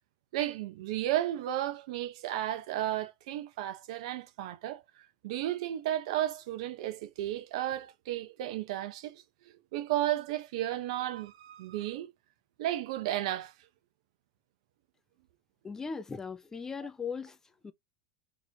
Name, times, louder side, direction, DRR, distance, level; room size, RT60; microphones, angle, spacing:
voice 1, 0.3-4.8 5.2-9.2 9.7-12.1 12.6-13.5, right 13 dB, 70° right, 0.8 m, -33 dB
voice 2, 15.6-17.4 17.6-17.7, left 5 dB, 15° left, 0.4 m, -38 dB
4.0 x 3.0 x 2.8 m
supercardioid pair, 135°, 4 cm